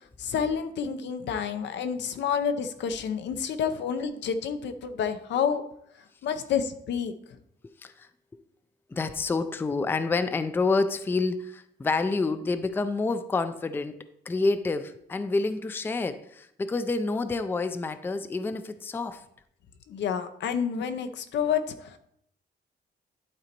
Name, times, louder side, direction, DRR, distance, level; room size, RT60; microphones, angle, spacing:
voice 1, 0.2-5.6 6.2-7.1 19.9-22.0, left 7 dB, 80° left, 9 dB, 0.8 m, -29 dB
voice 2, 8.9-14.0 14.3-19.2, left 3 dB, 10° left, 11 dB, 0.3 m, -28 dB
11.5 x 3.9 x 4.4 m, 0.73 s
cardioid pair, 160°, 18 cm